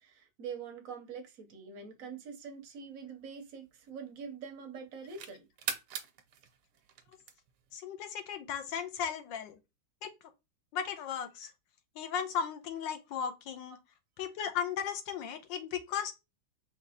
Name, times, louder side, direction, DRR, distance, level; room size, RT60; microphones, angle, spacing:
voice 1, 0.0-5.5 13.7-13.8, right 6 dB, 60° right, 0.9 m, -44 dB
sound 1, 2.6-4.3 4.8-7.7, right 7 dB, 85° right, 1.6 m, -43 dB
voice 2, 7.7-9.6 10.0-10.1 10.7-11.5 12.0-13.8 14.2-16.1, left 8 dB, 70° left, 1.3 m, -36 dB
5.2 x 3.0 x 2.7 m
omnidirectional pair, 2.3 m